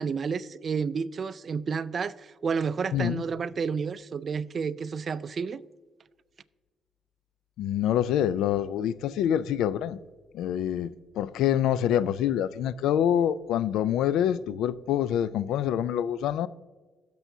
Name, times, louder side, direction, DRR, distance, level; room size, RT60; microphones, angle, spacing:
voice 1, 0.0-5.6, right 5 dB, 45° right, 0.4 m, -30 dB
voice 2, 2.9-3.2 7.6-10.0 10.3-10.9 11.2-16.5, left 10 dB, 85° left, 0.3 m, -26 dB
16.5 x 6.9 x 2.7 m
cardioid pair, 90°, 0 cm